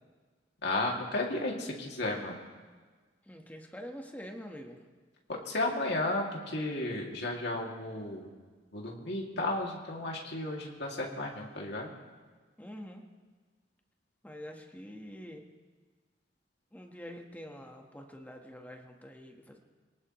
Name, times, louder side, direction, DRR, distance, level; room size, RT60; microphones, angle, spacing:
voice 1, 0.6-2.4 5.3-8.2 8.7-11.9, left 2 dB, 65° left, -1 dB, 2.5 m, -33 dB
voice 2, 3.3-4.8 12.6-13.0 14.2-15.4 16.7-19.6, equal, 10° left, 2 dB, 1.3 m, -46 dB
24.0 x 18.5 x 3.1 m, 1.4 s
head